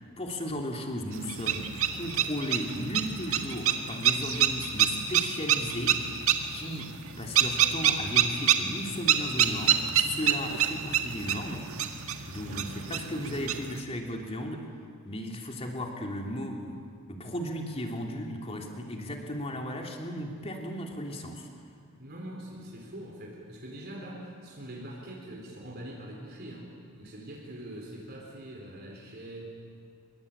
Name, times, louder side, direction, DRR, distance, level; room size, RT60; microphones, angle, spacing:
voice 1, 0.2-6.9 7.2-11.7 12.3-14.7 15.0-16.8 17.1-21.5, equal, 25° left, 2 dB, 3.1 m, -35 dB
sound 1, 1.1-13.8, right 9 dB, 70° right, 1.9 m, -27 dB
voice 2, 12.4-13.7 22.0-29.5, right 1 dB, 45° right, -2 dB, 4.3 m, -43 dB
27.5 x 23.0 x 8.7 m, 2.3 s
head